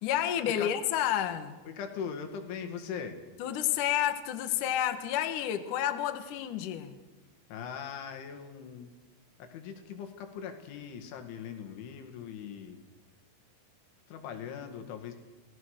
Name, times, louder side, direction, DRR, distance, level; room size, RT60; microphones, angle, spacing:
voice 1, 0.0-1.6 3.4-7.0, left 11 dB, 65° left, 2.1 m, -30 dB
voice 2, 1.7-3.2 7.5-8.9 9.4-12.8 14.1-15.1, left 7 dB, 80° left, 4.5 m, -40 dB
27.5 x 19.0 x 6.6 m
omnidirectional pair, 5.4 m